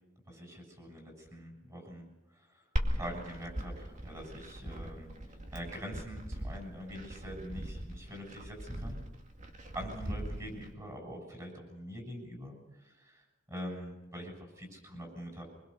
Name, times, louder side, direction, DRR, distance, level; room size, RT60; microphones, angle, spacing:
voice 1, 0.3-2.1 2.5-2.6 2.9-5.1 5.5-9.0 9.7-13.2 13.5-15.4, equal, 20° right, 2 dB, 6.9 m, -44 dB
Glass, 2.8-10.7, equal, 40° right, 2.3 m, -39 dB
25.0 x 22.0 x 6.6 m, 1.0 s
head